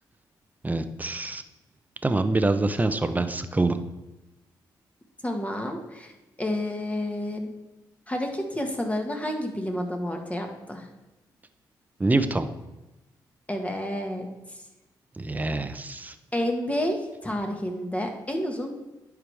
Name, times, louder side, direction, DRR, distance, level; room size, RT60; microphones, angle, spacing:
voice 1, 0.6-1.4 2.0-3.8 12.0-12.5 15.2-16.1, right 2 dB, 20° right, 10 dB, 0.7 m, -25 dB
voice 2, 5.2-6.1 6.4-7.5 8.1-10.8 13.5-14.3 16.3-17.0 17.2-18.7, left 1 dB, 15° left, 3 dB, 1.6 m, -29 dB
11.0 x 4.8 x 3.5 m, 1.0 s
supercardioid pair, 55°, 8 cm